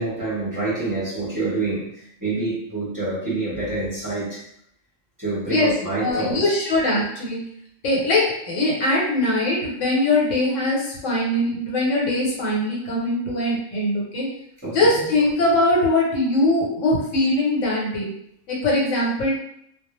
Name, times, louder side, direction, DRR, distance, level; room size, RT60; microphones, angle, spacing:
voice 1, 0.0-4.4 5.2-6.5 14.6-15.1, right 2 dB, 20° right, -9 dB, 0.8 m, -27 dB
voice 2, 6.0-7.4 7.8-14.2 14.7-18.1 18.5-19.3, left 1 dB, 75° left, -4 dB, 1.1 m, -21 dB
2.1 x 2.0 x 2.9 m, 0.72 s
omnidirectional pair, 1.3 m